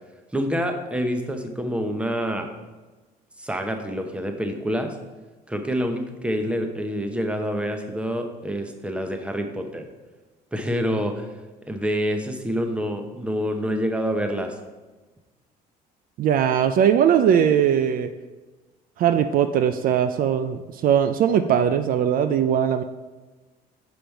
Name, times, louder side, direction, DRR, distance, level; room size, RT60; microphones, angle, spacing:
voice 1, 0.3-2.5 3.4-4.9 5.5-9.8 10.5-11.3 11.7-14.5, equal, 5° right, 5 dB, 0.8 m, -27 dB
voice 2, 16.2-18.1 19.0-22.8, right 9 dB, 55° right, 10 dB, 0.4 m, -20 dB
7.0 x 5.1 x 4.6 m, 1.2 s
cardioid pair, 110°, 17 cm